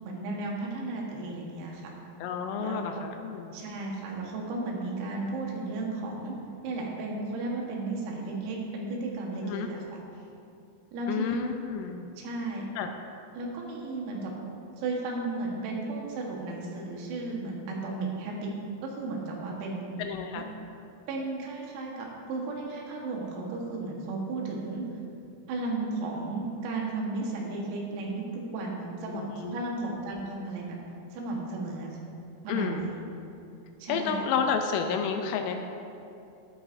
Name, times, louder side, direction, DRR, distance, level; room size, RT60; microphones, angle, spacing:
voice 1, 0.0-1.9 2.6-2.8 3.5-6.4 6.6-9.8 10.9-11.4 12.2-12.7 13.4-14.3 14.8-18.5 18.8-20.0 20.3-20.4 21.1-24.8 25.5-30.8 31.1-32.0 32.4-33.0 33.8-34.3, right 3 dB, 85° right, -2 dB, 4.2 m, -34 dB
voice 2, 2.2-3.6 9.4-9.7 11.1-12.1 12.8-12.9 20.0-20.5 29.1-30.0 32.5-32.9 33.9-35.6, left 6 dB, 80° left, 5 dB, 3.0 m, -31 dB
13.0 x 12.0 x 2.6 m, 2.6 s
omnidirectional pair, 6.0 m